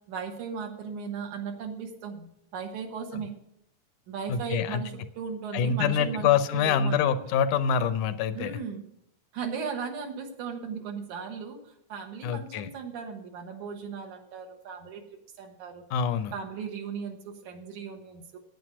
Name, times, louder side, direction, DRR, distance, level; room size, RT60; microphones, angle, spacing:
voice 1, 0.1-3.3 4.1-7.1 8.3-8.8 9.3-11.6 11.9-15.0 15.4-15.8 16.3-18.4, right 6 dB, 75° right, 3 dB, 2.7 m, -37 dB
voice 2, 4.3-4.8 5.5-8.6 12.2-12.7 15.9-16.3, left 7 dB, 80° left, 11 dB, 2.2 m, -26 dB
9.4 x 9.0 x 6.2 m, 0.77 s
omnidirectional pair, 3.5 m